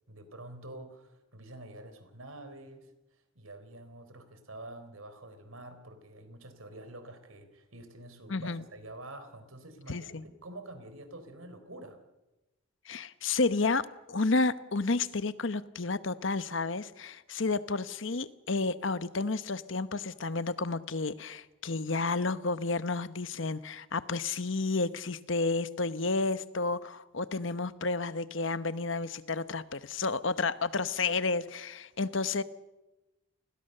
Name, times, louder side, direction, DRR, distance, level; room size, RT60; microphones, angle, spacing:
voice 1, 0.1-12.0, right 1 dB, 85° right, 9 dB, 4.1 m, -47 dB
voice 2, 8.3-8.6 9.9-10.2 12.8-32.4, left 3 dB, 65° left, 14 dB, 1.0 m, -31 dB
29.5 x 21.0 x 6.7 m, 1.0 s
head